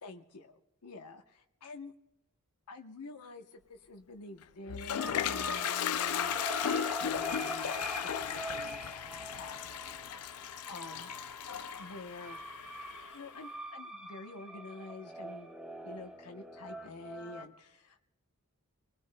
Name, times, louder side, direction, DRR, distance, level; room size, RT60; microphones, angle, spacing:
voice 1, 0.0-1.9 2.7-6.5 6.9-7.8 8.0-8.9 9.3-9.8 10.1-11.1 11.8-12.4 13.1-15.6 15.8-18.0, left 3 dB, 90° left, 4 dB, 0.9 m, -48 dB
Toilet flush, 4.4-13.3, left 9 dB, 70° left, 0.4 m, -36 dB
sound 1, 5.0-17.5, right 1 dB, 5° right, 0.9 m, -43 dB
27.5 x 19.5 x 2.2 m, 0.92 s
head